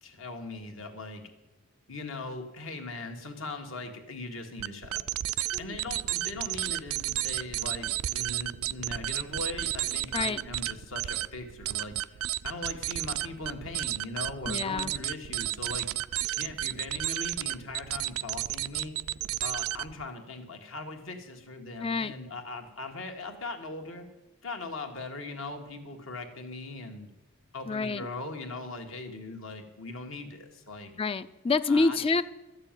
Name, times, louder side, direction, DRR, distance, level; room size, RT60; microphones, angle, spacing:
voice 1, 0.0-1.2 1.9-5.0 5.3-12.2 12.4-15.9 16.4-19.0 19.4-24.0 24.4-27.1 27.5-30.9 31.7-32.0, left 3 dB, 60° left, 4 dB, 1.7 m, -40 dB
sound 1, 4.6-20.1, right 14 dB, 70° right, 0.3 m, -32 dB
voice 2, 14.5-14.9 21.8-22.1 27.7-28.1 31.0-32.2, left 3 dB, 25° left, 14 dB, 0.4 m, -27 dB
13.0 x 6.8 x 9.0 m, 1.1 s
head